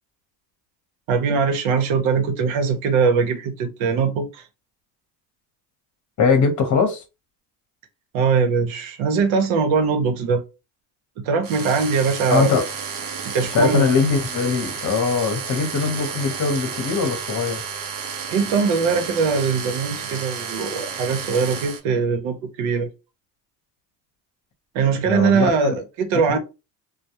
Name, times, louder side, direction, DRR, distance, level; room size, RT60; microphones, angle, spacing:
voice 1, 1.1-4.4 8.1-10.4 11.2-12.5 13.3-13.9 18.3-22.9 24.7-25.8 26.1-26.4, right 5 dB, 75° right, 0.8 m, -21 dB
voice 2, 6.2-7.0 12.3-12.6 13.5-17.6 25.0-25.8 26.1-26.4, left 5 dB, 35° left, 0.8 m, -21 dB
sound 1, 11.4-21.8, right 6 dB, 45° right, 0.6 m, -32 dB
2.2 x 2.0 x 2.9 m
supercardioid pair, 100°, 49 cm